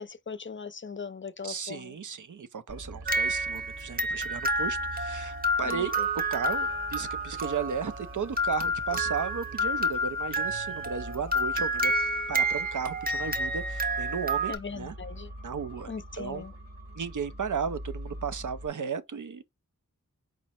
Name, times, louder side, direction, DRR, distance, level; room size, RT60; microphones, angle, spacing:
voice 1, 0.0-2.0 5.7-6.1 14.5-15.3 15.9-16.5, left 5 dB, 40° left, 0.5 m, -39 dB
voice 2, 1.4-5.9 6.3-11.9 12.3-14.9 15.4-15.9 16.2-16.4 17.0-19.4, right 6 dB, 70° right, 0.6 m, -34 dB
sound 1, 2.7-18.7, right 1 dB, 45° right, 1.0 m, -44 dB
sound 2, 3.1-14.6, equal, 30° right, 0.7 m, -29 dB
5.0 x 2.0 x 4.2 m
wide cardioid pair, 45°, 32 cm